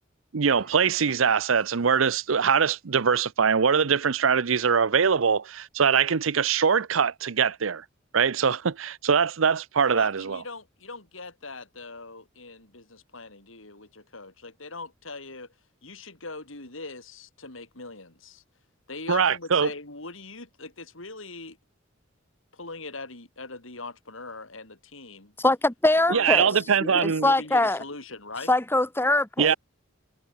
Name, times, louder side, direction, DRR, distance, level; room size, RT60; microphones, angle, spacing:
voice 1, 0.3-7.8 8.1-10.4 19.1-19.7 26.1-27.2 29.4-29.5, right 6 dB, 90° right, 0.7 m, -22 dB
sound 1, 0.6-2.7, right 4 dB, 50° right, 5.7 m, -53 dB
voice 2, 9.9-15.5 15.8-18.4 18.9-21.6 22.5-25.3 26.1-28.5, left 3 dB, 80° left, 6.0 m, -41 dB
voice 3, 25.4-26.5 26.8-27.8 28.5-29.6, left 2 dB, 10° left, 1.5 m, -23 dB
head